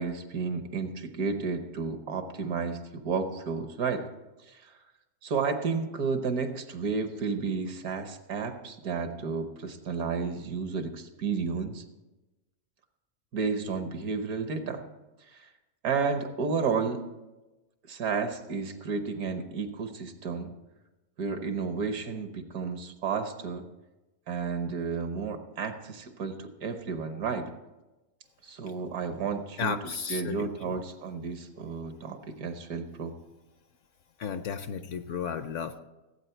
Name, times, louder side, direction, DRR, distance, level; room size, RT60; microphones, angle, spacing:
voice 1, 0.0-4.1 4.5-4.7 5.2-11.8 13.3-14.8 15.3-15.5 15.8-17.0 17.9-20.5 21.2-23.7 24.3-27.5 28.4-29.7 30.1-33.2, right 5 dB, 75° right, 8 dB, 1.5 m, -32 dB
voice 2, 29.6-30.8 34.2-35.8, left 6 dB, 65° left, 10 dB, 0.8 m, -34 dB
16.0 x 8.4 x 4.5 m, 1.1 s
omnidirectional pair, 1.6 m